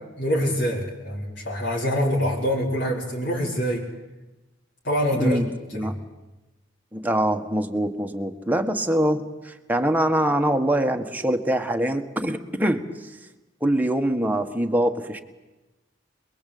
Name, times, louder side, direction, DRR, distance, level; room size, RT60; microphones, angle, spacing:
voice 1, 0.2-3.9 4.8-5.4 5.7-5.9, equal, 65° left, -4 dB, 4.7 m, -25 dB
voice 2, 5.1-5.4 5.7-5.9 6.9-12.9 13.6-15.2, right 1 dB, 10° right, 5 dB, 1.7 m, -24 dB
27.5 x 21.5 x 8.6 m, 1.1 s
head